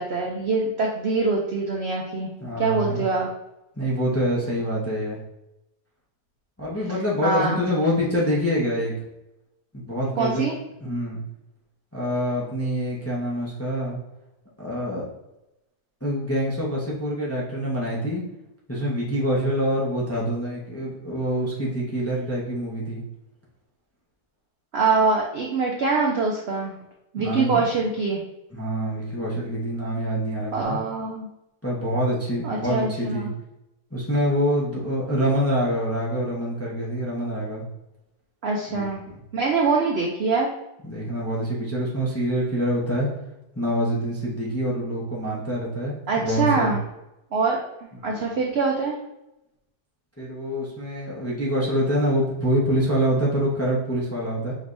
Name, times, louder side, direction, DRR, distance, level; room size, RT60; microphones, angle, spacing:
voice 1, 0.0-2.3 2.6-3.3 7.2-7.6 10.2-10.5 24.7-26.7 27.1-28.2 30.5-31.3 32.4-33.3 38.4-39.0 39.3-40.5 46.1-46.8 47.3-47.6 48.0-49.0, right 4 dB, 65° right, 0 dB, 0.6 m, -24 dB
voice 2, 2.4-3.0 3.8-5.2 6.6-8.9 9.7-10.5 10.8-11.2 11.9-14.0 14.6-15.0 16.0-18.2 18.7-23.0 27.2-27.6 28.5-30.8 31.6-33.3 33.9-37.6 38.7-39.2 40.8-43.1 43.5-46.7 47.9-48.3 50.2-54.5, equal, 15° left, -5 dB, 0.6 m, -26 dB
5.2 x 3.3 x 2.6 m, 0.91 s
omnidirectional pair, 1.7 m